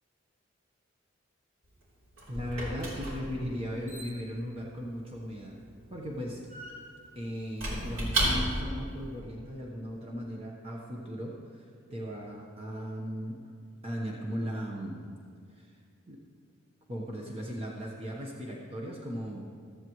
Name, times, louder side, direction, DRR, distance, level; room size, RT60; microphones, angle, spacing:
Squeak / Wood, 1.6-8.8, right 1 dB, 85° right, 3.6 m, -35 dB
voice 1, 2.3-5.6 5.9-6.4 7.1-13.4 13.8-15.0 15.5-15.7 16.1-16.2 16.9-19.5, equal, 30° right, -2 dB, 1.1 m, -37 dB
15.0 x 13.5 x 3.2 m, 2.2 s
head